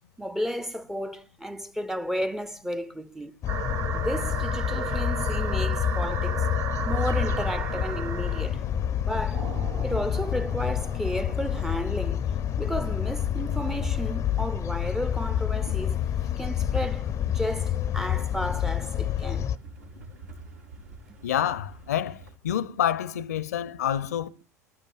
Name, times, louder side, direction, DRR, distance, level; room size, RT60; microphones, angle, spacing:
voice 1, 0.2-3.4 3.9-6.5 6.8-8.6 9.0-9.5 9.8-12.2 12.6-16.0 16.4-19.5, equal, 5° right, 0.7 m, -33 dB
sound 1, 3.4-19.6, left 10 dB, 35° left, 0.6 m, -28 dB
sound 2, 3.5-8.5 9.3-11.8, right 6 dB, 45° right, 1.1 m, -35 dB
sound 3, 6.7-22.4, right 3 dB, 70° right, 3.5 m, -46 dB
voice 2, 21.2-24.3, left 10 dB, 70° left, 0.7 m, -28 dB
29.5 x 12.5 x 2.5 m
figure-of-eight pair, 75°, 9 cm